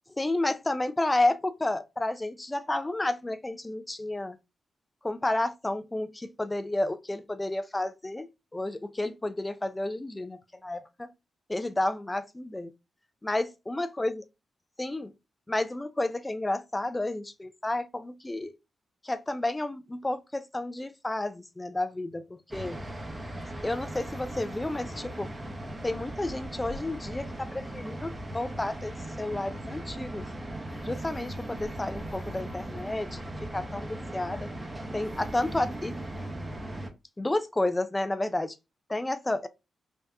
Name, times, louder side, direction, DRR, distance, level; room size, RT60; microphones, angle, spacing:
voice 1, 0.2-4.4 5.0-8.3 8.5-11.1 11.5-12.7 13.2-14.2 14.8-15.1 15.5-18.5 19.0-22.8 23.6-25.3 25.8-30.3 30.8-34.5 34.9-36.0 37.2-38.6 38.9-39.5, left 2 dB, 15° left, 0.3 m, -31 dB
sound 1, 22.5-36.9, right 1 dB, 20° right, 0.7 m, -38 dB
3.4 x 2.7 x 3.4 m
wide cardioid pair, 120°, 0 cm